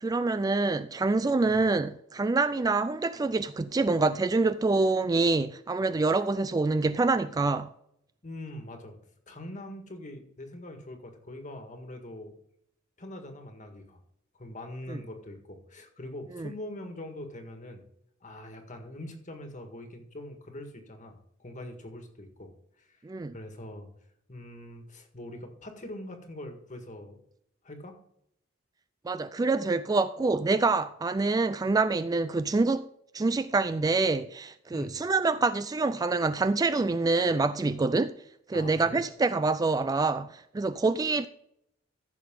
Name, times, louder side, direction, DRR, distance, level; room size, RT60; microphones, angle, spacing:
voice 1, 0.0-7.7 14.9-15.0 16.4-16.5 23.0-23.3 29.0-32.9 33.1-38.1 38.5-41.3, right 3 dB, 20° right, 0.3 m, -26 dB
voice 2, 8.2-9.0 9.3-12.4 13.0-14.0 14.4-17.8 18.2-22.5 22.8-23.0 23.3-23.9 24.3-27.2 27.6-28.0 34.7-34.9 38.5-39.0, left 1 dB, 40° left, 1.8 m, -43 dB
14.5 x 6.7 x 3.8 m
head